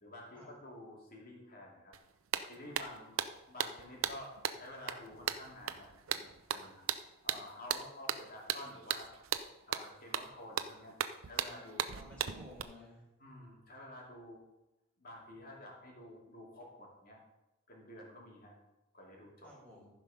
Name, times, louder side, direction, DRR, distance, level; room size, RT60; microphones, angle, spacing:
voice 1, 0.0-1.9 2.5-3.2 3.4-6.8 7.2-9.1 9.7-10.9 11.2-11.9 13.2-14.4 15.0-17.2 17.7-18.5 18.9-19.5, left 1 dB, 45° left, -2 dB, 2.7 m, -50 dB
sound 1, 1.9-2.0 2.3-12.6, right 9 dB, 80° right, 0.6 m, -37 dB
voice 2, 11.5-13.1 19.4-19.9, left 1 dB, 5° left, -4 dB, 3.8 m, -54 dB
14.0 x 5.2 x 5.7 m, 0.97 s
head